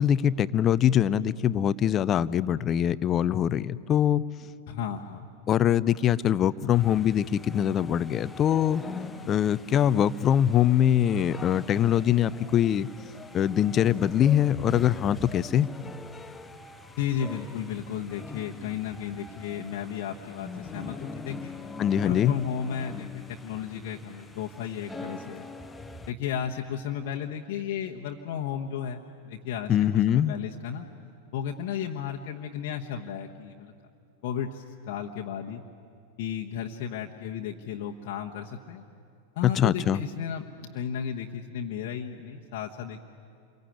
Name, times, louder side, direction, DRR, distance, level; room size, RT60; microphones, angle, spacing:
voice 1, 0.0-4.2 5.5-8.8 9.3-12.9 13.3-15.7 21.8-22.3 29.7-30.4 39.4-40.0, left 10 dB, 30° left, 18 dB, 0.6 m, -23 dB
voice 2, 4.7-5.3 17.0-21.5 22.0-25.4 26.1-30.9 31.3-33.7 34.2-35.6 36.2-38.8 39.4-40.4 40.7-43.0, left 8 dB, 50° left, 0 dB, 1.2 m, -34 dB
sound 1, 6.7-26.1, left 3 dB, 10° left, 1.1 m, -43 dB
27.5 x 23.0 x 9.4 m, 2.4 s
figure-of-eight pair, 90°, 0 cm